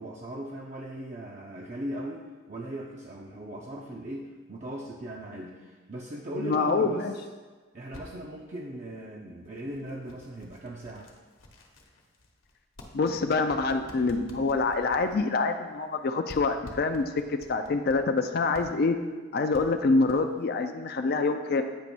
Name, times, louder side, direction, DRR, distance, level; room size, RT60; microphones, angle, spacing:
voice 1, 0.0-7.1 7.7-11.1, right 1 dB, 35° right, -2 dB, 0.5 m, -38 dB
voice 2, 6.4-7.1 12.9-19.0 19.3-21.6, left 3 dB, 50° left, 6 dB, 0.4 m, -26 dB
sound 1, 7.8-8.0 8.7-8.9 9.4-16.0 16.3-18.0 18.5-18.6 19.1-19.2 19.5-19.6 20.0-20.4, left 1 dB, 80° left, 1.0 m, -49 dB
8.4 x 3.0 x 6.0 m, 1.3 s
head